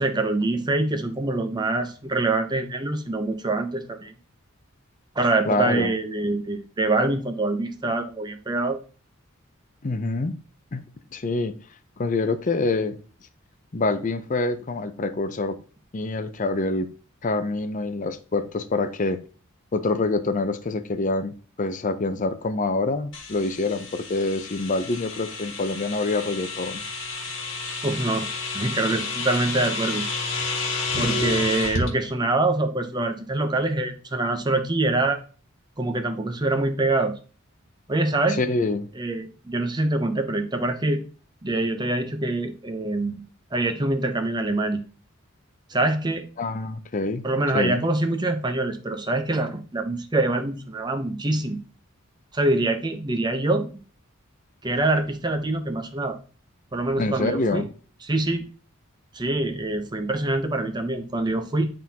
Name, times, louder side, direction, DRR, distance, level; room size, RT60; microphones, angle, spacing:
voice 1, 0.0-4.1 5.2-8.8 27.8-30.1 31.0-35.2 35.8-37.2 37.9-38.4 38.9-41.0 41.4-43.2 43.5-44.8 45.7-46.2 47.2-51.6 52.3-53.7 54.6-56.2 56.7-57.7 58.0-58.5 59.1-61.7, right 2 dB, 20° right, 0.7 m, -25 dB
voice 2, 5.5-5.9 9.8-10.4 10.7-10.9 11.1-11.6 12.0-13.0 13.7-15.6 15.9-16.9 17.2-19.2 19.7-26.8 38.4-38.9 46.4-47.3 47.5-47.8 57.0-57.7, left 3 dB, 35° left, 0.5 m, -26 dB
sound 1, 23.1-31.9, left 3 dB, 60° left, 1.5 m, -30 dB
10.5 x 3.7 x 2.9 m
head